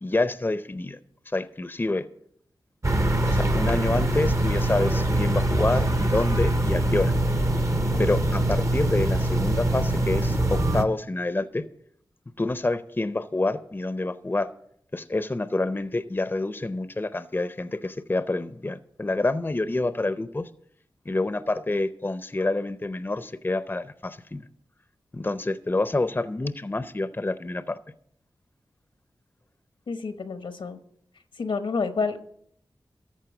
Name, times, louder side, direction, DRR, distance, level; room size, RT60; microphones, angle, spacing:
voice 1, 0.0-1.0 1.3-2.1 3.2-7.1 8.0-11.6 12.4-14.5 14.9-20.5 21.1-24.4 25.1-27.8, left 2 dB, 25° left, 13 dB, 0.6 m, -27 dB
sound 1, 2.8-10.8, right 1 dB, 35° right, 0.8 m, -23 dB
voice 2, 29.9-30.8 31.4-32.2, left 4 dB, 80° left, 9 dB, 1.0 m, -29 dB
13.5 x 4.6 x 6.9 m, 0.69 s
cardioid pair, 45°, 8 cm